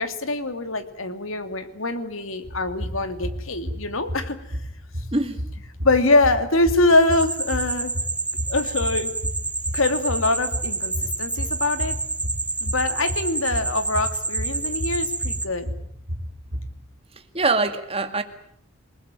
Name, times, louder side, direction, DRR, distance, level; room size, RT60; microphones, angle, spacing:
voice 1, 0.0-4.4 5.8-7.9 8.5-9.1 9.7-12.0 12.6-15.7, left 2 dB, 75° left, 9 dB, 2.6 m, -23 dB
sound 1, 2.4-16.7, equal, 60° right, 4.4 m, -32 dB
voice 2, 5.1-5.4 17.3-18.2, right 3 dB, 30° right, 7 dB, 2.2 m, -23 dB
sound 2, 7.1-15.5, right 3 dB, 5° right, 1.4 m, -29 dB
27.5 x 20.0 x 9.0 m, 0.72 s
head